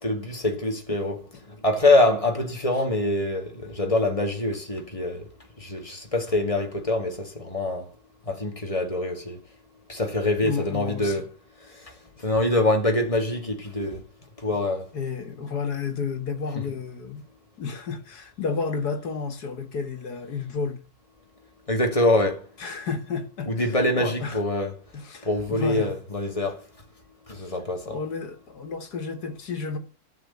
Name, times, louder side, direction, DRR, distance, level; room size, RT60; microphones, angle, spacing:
voice 1, 0.0-5.3 5.6-7.9 8.3-9.4 9.9-11.2 11.7-11.9 12.2-14.0 14.4-14.9 21.7-22.4 23.5-24.7 25.2-26.6 27.3-28.0, left 2 dB, 20° left, 2.0 m, -25 dB
voice 2, 10.4-11.2 14.9-17.2 17.6-20.8 22.6-23.5 24.0-24.4 24.9-25.9 27.4-27.6 27.9-29.8, left 5 dB, 85° left, 2.3 m, -31 dB
12.0 x 6.4 x 8.6 m
omnidirectional pair, 1.7 m